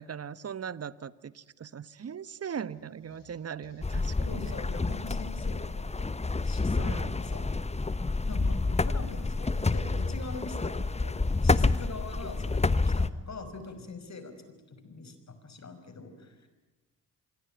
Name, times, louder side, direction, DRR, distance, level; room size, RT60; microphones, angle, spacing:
voice 1, 0.0-4.6 6.8-7.2, right 7 dB, 35° right, 17 dB, 1.2 m, -39 dB
sound 1, 2.7-6.2, left 5 dB, 70° left, 6.9 m, -57 dB
sound 2, 3.8-13.1, left 3 dB, 15° left, 1.1 m, -28 dB
voice 2, 4.3-5.9 6.4-7.5 8.3-14.3 14.7-16.5, left 3 dB, 40° left, 10 dB, 5.6 m, -43 dB
26.0 x 22.5 x 9.1 m, 1.1 s
hypercardioid pair, 55°, 42 cm